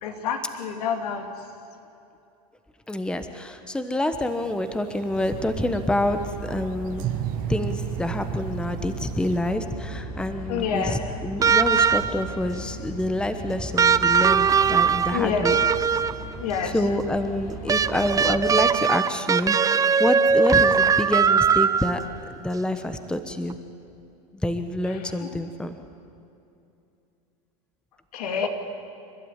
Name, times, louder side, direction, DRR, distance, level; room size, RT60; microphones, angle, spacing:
voice 1, 0.0-1.3 10.5-11.1 15.1-15.5 16.4-16.7 25.2-25.3 28.1-28.5, left 6 dB, 75° left, 5 dB, 2.7 m, -27 dB
voice 2, 2.9-7.2 7.5-15.6 16.6-22.0 22.4-23.6 24.4-25.8, left 1 dB, 5° left, 9 dB, 1.2 m, -27 dB
sound 1, 4.3-9.4, right 12 dB, 45° right, 1.0 m, -35 dB
sound 2, 5.1-18.5, right 1 dB, 50° left, 5.5 m, -37 dB
sound 3, 11.4-12.4 13.8-16.3 17.7-22.1 23.5-23.6, right 6 dB, 20° right, 0.5 m, -20 dB
29.0 x 12.5 x 10.0 m, 2.7 s
hypercardioid pair, 110°, 19 cm